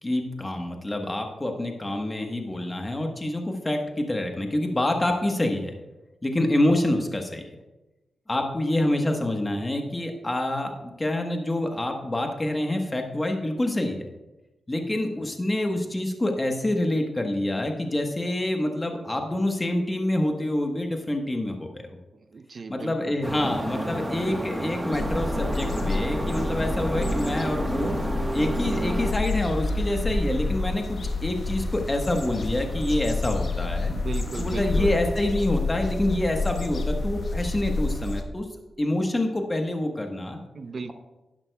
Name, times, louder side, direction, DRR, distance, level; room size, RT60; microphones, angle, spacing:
voice 1, 0.0-5.7 6.2-7.5 8.3-14.1 14.7-21.8 22.7-28.0 28.3-33.9 34.4-38.5 38.8-40.4, left 1 dB, 20° left, 3 dB, 1.2 m, -27 dB
voice 2, 22.1-23.2 33.9-35.0 40.5-40.9, right 4 dB, 50° right, 10 dB, 0.7 m, -36 dB
sound 1, 23.2-29.1, right 1 dB, 15° right, 1.2 m, -30 dB
sound 2, 24.9-38.2, left 2 dB, 55° left, 1.1 m, -29 dB
11.0 x 10.5 x 2.3 m, 1.1 s
cardioid pair, 75°, 0 cm